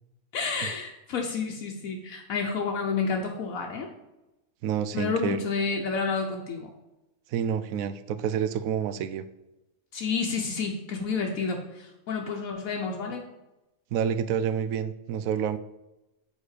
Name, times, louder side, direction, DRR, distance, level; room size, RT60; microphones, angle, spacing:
voice 1, 0.3-3.9 4.9-6.7 9.9-13.2, left 5 dB, 75° left, 1 dB, 1.2 m, -30 dB
voice 2, 4.6-5.5 7.3-9.3 13.9-15.6, right 8 dB, 80° right, 13 dB, 1.0 m, -28 dB
7.3 x 4.2 x 6.5 m, 0.98 s
omnidirectional pair, 1.5 m